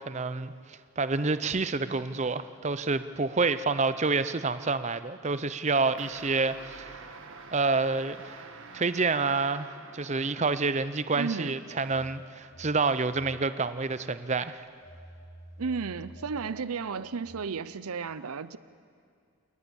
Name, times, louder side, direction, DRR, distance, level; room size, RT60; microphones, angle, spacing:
voice 1, 0.0-7.0 7.5-8.5 8.7-9.7 9.9-14.6, right 3 dB, 30° right, 13 dB, 0.7 m, -28 dB
sound 1, 6.0-11.0 11.7-12.3, right 4 dB, 60° right, 1.5 m, -48 dB
voice 2, 11.1-11.5 15.6-18.6, right 5 dB, 85° right, 15 dB, 0.6 m, -33 dB
Telephone, 11.6-13.9 14.3-17.4, right 1 dB, 40° left, 4.7 m, -50 dB
29.5 x 19.0 x 7.1 m, 2.3 s
head